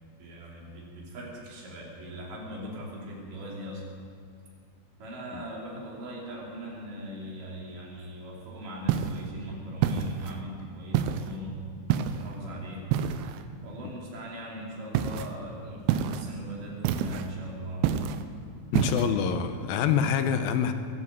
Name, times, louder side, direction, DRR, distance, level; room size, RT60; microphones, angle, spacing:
voice 1, 0.2-3.8 5.0-11.6 12.1-12.9 13.6-17.9 18.6-19.3, equal, 55° right, -4 dB, 4.6 m, -40 dB
sound 1, 8.9-9.3 9.8-10.4 10.9-11.3 11.9-12.3 12.9-13.4 14.9-15.3 15.9-16.3 16.8-17.3 17.8-18.3 18.7-19.1, right 9 dB, 80° right, 2.6 m, -27 dB
voice 2, 18.7-20.7, left 8 dB, 75° left, 9 dB, 2.3 m, -26 dB
21.5 x 8.5 x 7.5 m, 2.2 s
omnidirectional pair, 4.7 m